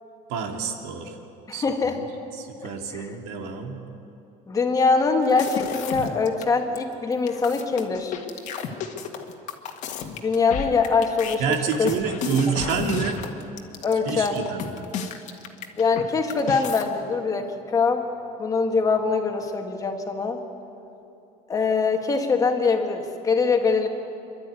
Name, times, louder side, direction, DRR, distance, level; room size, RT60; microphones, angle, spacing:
voice 1, 0.3-1.1 1.5-1.6 2.0-2.1 2.4-3.8 11.4-13.2 14.0-14.8, right 6 dB, 80° right, 3 dB, 2.6 m, -28 dB
voice 2, 1.5-2.0 2.6-3.1 4.5-8.1 10.2-11.4 11.8-11.9 13.8-14.4 15.8-18.1 18.4-20.4 21.5-23.9, left 4 dB, 20° left, 4 dB, 1.8 m, -23 dB
sound 1, 5.2-6.4 6.8-6.9 7.1-16.0 16.3-16.8, left 6 dB, 50° left, 1.8 m, -32 dB
28.0 x 12.0 x 9.7 m, 2.8 s
cardioid pair, 155°, 16 cm